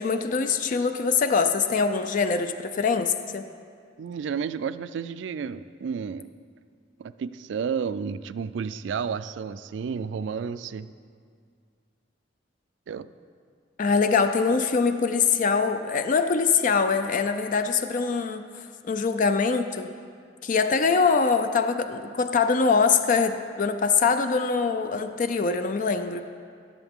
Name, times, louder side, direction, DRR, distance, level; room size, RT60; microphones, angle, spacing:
voice 1, 0.0-3.4 13.8-18.4 18.9-19.9 20.4-26.2, left 5 dB, 45° left, 8 dB, 0.4 m, -23 dB
voice 2, 4.0-6.3 7.0-10.9 12.9-13.1, right 6 dB, 70° right, 14 dB, 0.3 m, -31 dB
16.5 x 7.1 x 3.6 m, 2.2 s
head